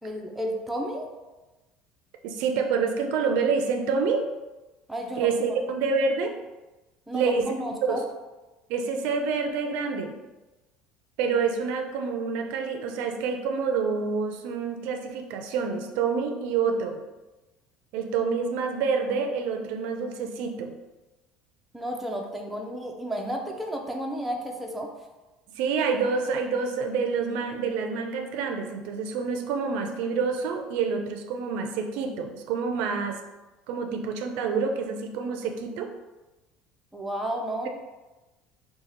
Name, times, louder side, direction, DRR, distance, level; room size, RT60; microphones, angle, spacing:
voice 1, 0.0-1.1 4.9-5.3 7.1-8.0 21.7-24.9 36.9-37.7, right 1 dB, ahead, 0 dB, 0.4 m, -32 dB
voice 2, 2.2-4.3 5.2-6.3 7.1-7.5 7.8-8.0 8.7-10.1 11.2-17.0 17.9-20.7 25.6-33.2 33.7-35.9, right 5 dB, 70° right, 4 dB, 0.4 m, -27 dB
2.8 x 2.4 x 3.8 m, 1.1 s
cardioid pair, 125°, 3 cm